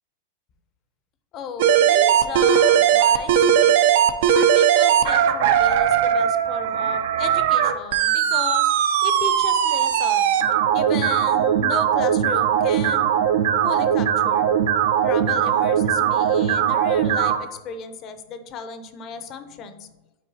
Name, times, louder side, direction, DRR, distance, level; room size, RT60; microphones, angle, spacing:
voice 1, 1.3-3.7 4.3-8.7 9.0-10.4 10.7-13.2 13.6-14.5 15.0-19.9, left 6 dB, 35° left, 9 dB, 0.6 m, -34 dB
sound 1, 1.6-17.4, right 9 dB, 65° right, 0.4 m, -19 dB
8.6 x 4.3 x 2.7 m, 1.1 s
supercardioid pair, 135°, 0 cm